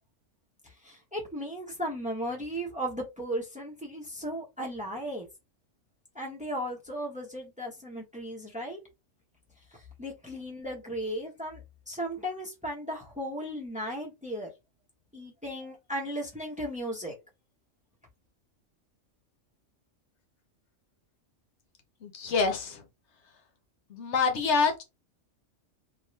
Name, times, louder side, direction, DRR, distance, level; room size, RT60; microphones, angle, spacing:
voice 1, 0.8-5.3 6.1-8.8 9.7-14.5 15.1-17.1, equal, 5° right, 0.8 m, -36 dB
voice 2, 22.0-22.8 23.9-24.8, left 5 dB, 70° left, 1.0 m, -26 dB
2.8 x 2.4 x 3.1 m
omnidirectional pair, 1.3 m